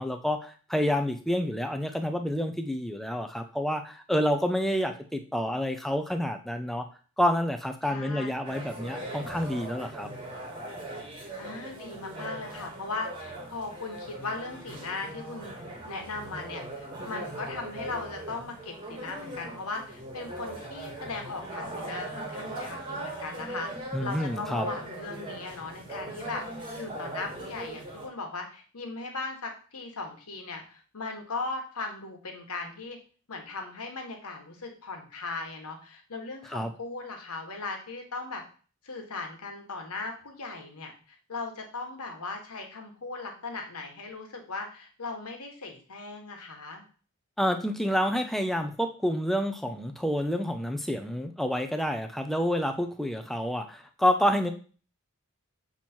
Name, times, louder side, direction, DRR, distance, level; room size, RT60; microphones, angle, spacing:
voice 1, 0.0-6.9 7.2-10.1 23.9-24.7 36.5-36.7 47.4-54.5, equal, ahead, 6 dB, 0.5 m, -28 dB
voice 2, 7.8-8.6 11.4-15.5 15.9-33.0 33.3-38.4 38.8-46.8, left 3 dB, 85° left, 3 dB, 1.3 m, -38 dB
sound 1, 8.4-28.1, right 1 dB, 25° right, 1.3 m, -40 dB
7.2 x 3.0 x 4.3 m, 0.39 s
head